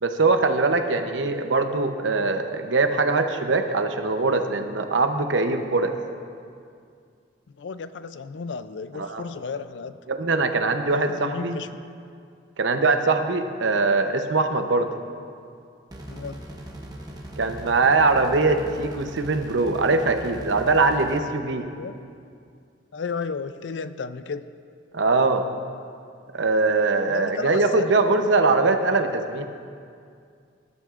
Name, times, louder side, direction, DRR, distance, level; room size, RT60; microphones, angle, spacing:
voice 1, 0.0-5.9 9.0-9.2 10.1-11.6 12.6-14.9 17.4-21.7 24.9-25.5 26.3-29.5, right 3 dB, 80° right, 6 dB, 0.8 m, -22 dB
voice 2, 7.5-10.0 10.9-11.7 16.1-16.4 21.7-22.0 22.9-24.5 27.1-27.9, left 5 dB, 70° left, 12 dB, 0.4 m, -33 dB
sound 1, 15.9-21.2, right 1 dB, 20° right, 1.0 m, -39 dB
18.5 x 11.0 x 2.5 m, 2.3 s
head